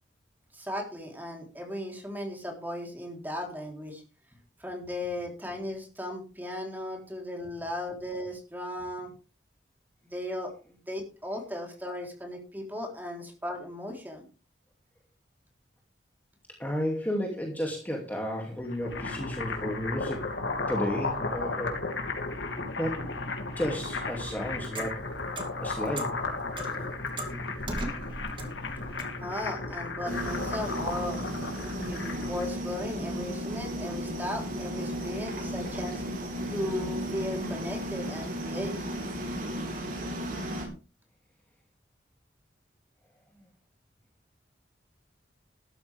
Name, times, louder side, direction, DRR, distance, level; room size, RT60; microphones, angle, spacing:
voice 1, 0.5-4.0 4.6-9.1 10.0-14.2 29.2-36.0 36.5-38.8, left 1 dB, 10° right, 1 dB, 3.7 m, -36 dB
voice 2, 16.6-21.8 22.8-23.1 23.6-25.1 25.6-26.4 43.4-43.5, equal, 10° left, 0 dB, 2.6 m, -33 dB
sound 1, 18.6-32.5, left 3 dB, 75° left, 2.6 m, -34 dB
Clock, 24.2-29.2, right 2 dB, 25° right, 2.7 m, -39 dB
sound 2, 30.1-40.7, equal, 45° right, 4.5 m, -34 dB
13.5 x 13.0 x 3.5 m, 0.32 s
head